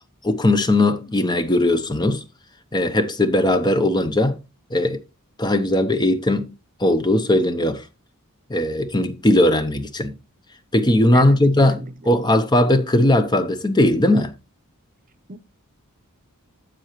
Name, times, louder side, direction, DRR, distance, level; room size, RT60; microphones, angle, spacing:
voice 1, 0.2-2.2 2.7-4.4 4.7-5.0 5.4-7.8 8.5-10.1 10.7-14.3, left 1 dB, 20° left, 0.7 m, -19 dB
voice 2, 11.1-11.9 15.3-15.4, right 3 dB, 40° right, 0.8 m, -34 dB
9.8 x 7.5 x 3.0 m
head